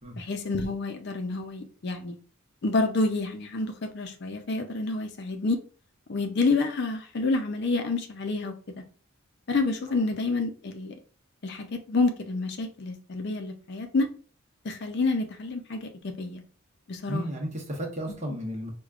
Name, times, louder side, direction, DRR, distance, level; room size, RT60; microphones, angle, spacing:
voice 1, 0.2-2.2 2.6-5.6 6.1-8.8 9.5-10.9 11.4-14.1 14.6-16.4 16.9-17.3, left 3 dB, 55° left, 0.5 m, -28 dB
voice 2, 17.1-18.7, equal, 35° right, 0.9 m, -33 dB
4.8 x 2.2 x 2.4 m
head